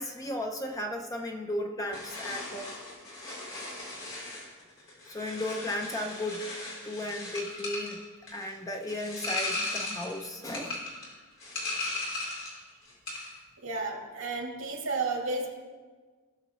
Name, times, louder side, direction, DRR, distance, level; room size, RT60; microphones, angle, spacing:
voice 1, 0.0-2.7 5.1-6.5 6.8-8.0 8.3-10.8, left 1 dB, 15° left, 3 dB, 0.6 m, -35 dB
sound 1, 1.9-12.6 12.9-13.4, left 2 dB, 70° left, 3.6 m, -37 dB
voice 2, 13.6-15.5, right 3 dB, 70° right, 0 dB, 2.3 m, -32 dB
18.5 x 6.5 x 3.1 m, 1.4 s
head